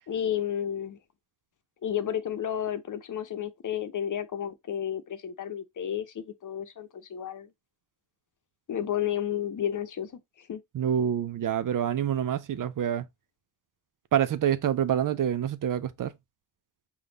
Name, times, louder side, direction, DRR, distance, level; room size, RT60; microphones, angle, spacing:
voice 1, 0.1-1.0 1.8-7.5 8.7-10.6, left 9 dB, 50° left, 0.8 m, -32 dB
voice 2, 10.7-13.0 14.1-16.1, right 9 dB, 50° right, 0.6 m, -27 dB
5.0 x 2.4 x 3.9 m
hypercardioid pair, 45°, 41 cm